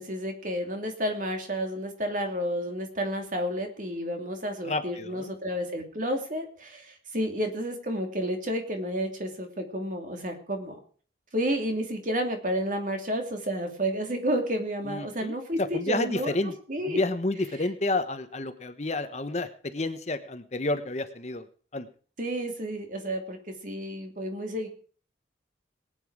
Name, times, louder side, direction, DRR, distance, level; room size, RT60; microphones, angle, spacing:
voice 1, 0.0-10.8 11.3-16.4 16.7-17.0 17.5-17.7 22.2-23.4 23.6-24.7, equal, 45° right, 4 dB, 2.8 m, -31 dB
voice 2, 4.7-5.3 14.9-16.1 16.3-16.5 16.9-21.4 21.7-21.9, left 2 dB, 35° left, 9 dB, 1.1 m, -30 dB
20.0 x 9.3 x 4.8 m, 0.42 s
head